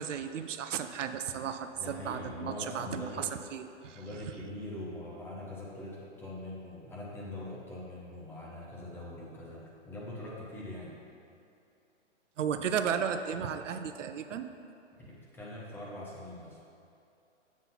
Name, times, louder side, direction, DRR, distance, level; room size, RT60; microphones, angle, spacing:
voice 1, 0.0-4.0 12.4-14.5, right 7 dB, 85° right, 9 dB, 0.6 m, -34 dB
voice 2, 1.8-3.2 3.9-11.0 15.0-16.6, left 1 dB, 5° left, -5 dB, 0.8 m, -42 dB
7.3 x 4.0 x 5.5 m, 2.7 s
hypercardioid pair, 140°, 36 cm